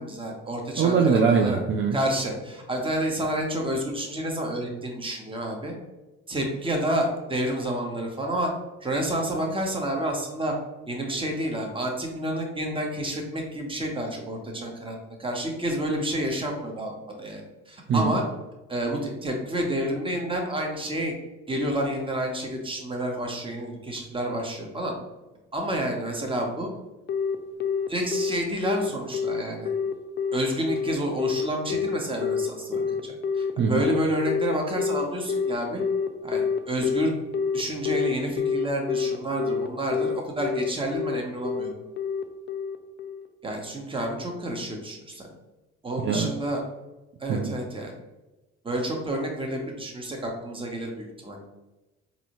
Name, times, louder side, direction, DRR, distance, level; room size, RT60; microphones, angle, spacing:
voice 1, 0.0-1.6 1.9-5.7 6.3-8.5 8.8-10.5 10.9-16.9 17.2-18.2 18.7-21.1 21.5-24.9 25.5-26.7 27.9-29.7 30.3-35.8 36.2-37.1 37.5-41.7 43.4-45.3 45.8-46.6 47.2-47.9 48.6-51.4, right 1 dB, 15° right, 1 dB, 1.0 m, -29 dB
voice 2, 0.8-2.0 17.9-18.1 33.6-33.8 46.0-46.3 47.3-47.5, right 5 dB, 40° right, 2 dB, 0.5 m, -22 dB
Telephone, 27.1-43.3, left 6 dB, 35° left, 0.4 m, -27 dB
3.9 x 2.8 x 3.0 m, 1.0 s
supercardioid pair, 70°, 31 cm